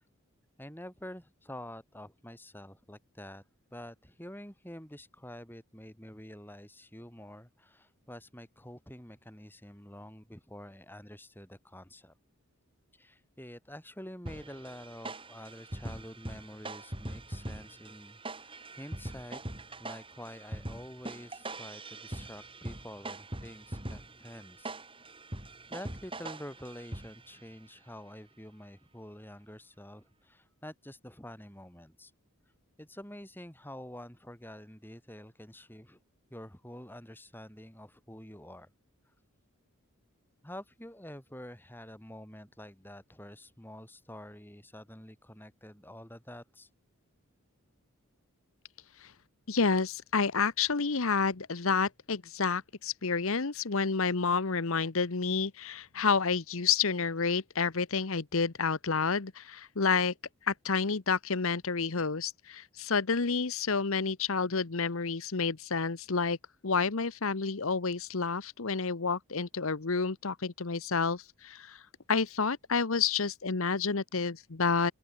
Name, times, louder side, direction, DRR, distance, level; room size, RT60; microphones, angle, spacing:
voice 1, 0.6-3.4 3.7-12.1 12.9-19.4 19.8-24.7 25.7-32.1 32.8-36.0 36.3-38.7 40.4-46.7, left 1 dB, 10° left, 6.7 m, -47 dB
sound 1, 14.3-27.4, right 1 dB, 25° right, 4.5 m, -42 dB
voice 2, 49.5-60.1 60.4-66.4 66.6-71.8 72.1-74.9, left 5 dB, 70° left, 1.0 m, -29 dB
open air
head